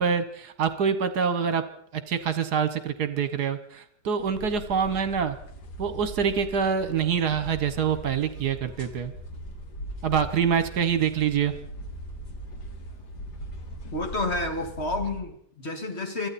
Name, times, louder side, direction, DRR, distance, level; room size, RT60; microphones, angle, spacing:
voice 1, 0.0-1.6 1.9-5.4 5.8-9.1 10.0-11.5, right 7 dB, 65° right, 11 dB, 1.7 m, -25 dB
sound 1, 4.2-15.2, right 1 dB, 65° left, 2.1 m, -40 dB
voice 2, 13.9-16.3, left 2 dB, 35° left, 4 dB, 2.3 m, -30 dB
24.0 x 14.0 x 4.2 m, 0.65 s
omnidirectional pair, 1.9 m